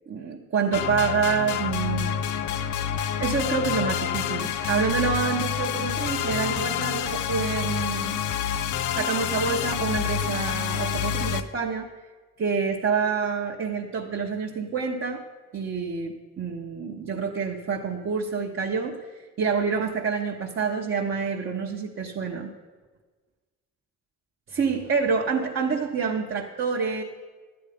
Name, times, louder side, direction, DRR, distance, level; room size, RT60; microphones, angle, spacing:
voice 1, 0.1-2.4 3.2-8.2 8.9-11.9 12.4-15.2 15.5-22.5 24.5-27.0, right 5 dB, 45° right, -2 dB, 1.2 m, -27 dB
sound 1, 0.7-11.4, left 9 dB, 80° left, 0.7 m, -28 dB
12.0 x 9.3 x 5.1 m, 1.3 s
cardioid pair, 90°, 30 cm